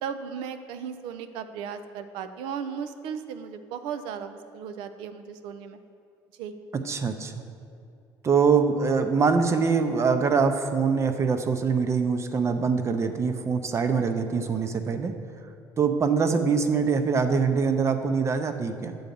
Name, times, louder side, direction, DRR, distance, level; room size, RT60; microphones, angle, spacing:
voice 1, 0.0-5.8 6.4-6.5, right 7 dB, 85° right, 9 dB, 0.5 m, -36 dB
voice 2, 6.9-7.4 8.2-15.1 15.8-19.0, right 5 dB, 35° right, 7 dB, 0.6 m, -24 dB
8.1 x 3.9 x 6.9 m, 2.4 s
cardioid pair, 105°, 8 cm